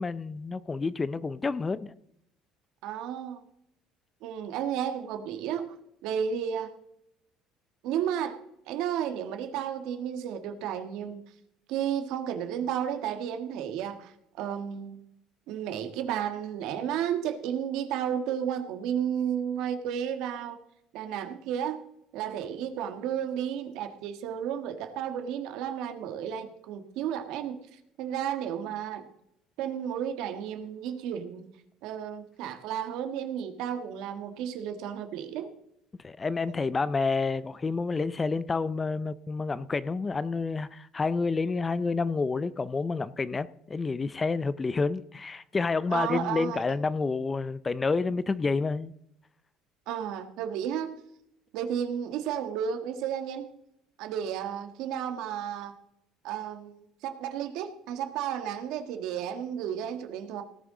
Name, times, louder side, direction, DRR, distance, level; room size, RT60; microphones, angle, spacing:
voice 1, 0.0-1.9 36.0-48.9, left 4 dB, 20° left, 0.4 m, -29 dB
voice 2, 2.8-3.4 4.2-5.7 6.0-6.7 7.8-8.4 8.7-11.2 11.7-15.0 15.5-20.6 20.9-21.8 22.1-27.6 28.0-29.0 29.6-31.4 31.8-35.5 45.9-46.6 49.9-50.9 51.5-53.5 54.0-55.7 56.2-60.4, right 9 dB, 75° right, 1.5 m, -32 dB
18.5 x 9.0 x 3.8 m
cardioid pair, 120°, 0 cm